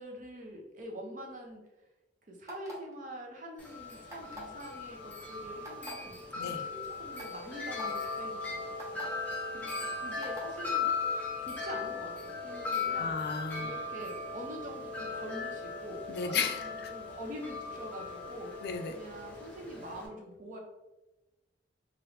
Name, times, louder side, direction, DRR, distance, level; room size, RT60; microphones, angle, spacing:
voice 1, 0.0-1.6 2.3-9.0 9.5-10.9 11.4-13.2 13.6-18.5 18.9-20.6, equal, 45° right, 1 dB, 0.7 m, -45 dB
sound 1, 2.5-2.9 4.1-4.5 5.6-5.9 6.7-6.8 7.2-7.3 7.7-7.9 8.8-9.0 10.2-10.5, left 1 dB, 15° right, 0.8 m, -45 dB
Wind chime, 3.6-20.1, left 4 dB, 10° left, 0.5 m, -38 dB
voice 2, 6.4-6.7 12.9-13.7 16.1-16.9 18.6-18.9, left 5 dB, 60° left, 5 dB, 0.4 m, -34 dB
3.0 x 2.5 x 3.2 m, 1.0 s
head